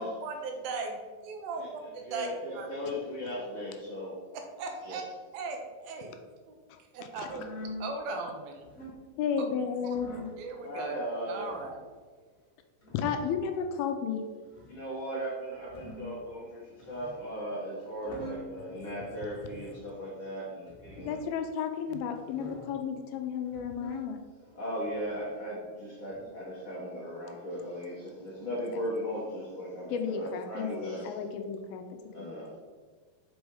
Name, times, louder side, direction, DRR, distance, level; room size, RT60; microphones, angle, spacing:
voice 1, 0.0-2.3 2.5-2.7 4.3-5.0 5.3-6.1 6.5-6.6 6.9-7.5 7.8-8.6 10.4-10.9 11.3-11.8 21.9-22.0, right 4 dB, 75° right, 3 dB, 2.4 m, -38 dB
voice 2, 1.6-4.2 4.8-5.0 10.6-11.5 14.7-21.2 24.5-31.2 32.1-32.6, equal, 50° left, -8 dB, 1.5 m, -37 dB
sound 1, 7.3-7.8 8.5-9.0 9.9-10.4 11.3-11.8 12.8-13.3 14.4-14.8 15.5-16.2 16.8-17.2 17.8-18.5 19.3-19.8 20.6-21.2 22.1-22.8 23.4-24.1 24.8-25.3 26.1-26.2, left 1 dB, 30° left, 1.7 m, -45 dB
voice 3, 9.2-10.1 12.9-14.2 21.1-24.2 29.9-31.8, left 7 dB, 80° left, 6 dB, 2.4 m, -32 dB
6.1 x 5.0 x 4.8 m, 1.5 s
omnidirectional pair, 4.4 m